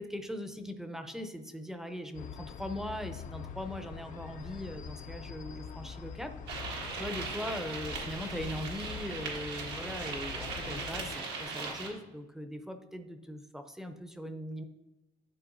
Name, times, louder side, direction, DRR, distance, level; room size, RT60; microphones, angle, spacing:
voice 1, 0.0-6.3 6.6-14.6, equal, 5° right, 7 dB, 0.6 m, -40 dB
sound 1, 2.1-11.1, left 7 dB, 50° left, 0.5 m, -44 dB
sound 2, 6.5-11.9, right 4 dB, 80° right, 1.6 m, -39 dB
11.0 x 4.4 x 2.6 m, 1.0 s
cardioid pair, 110°, 17 cm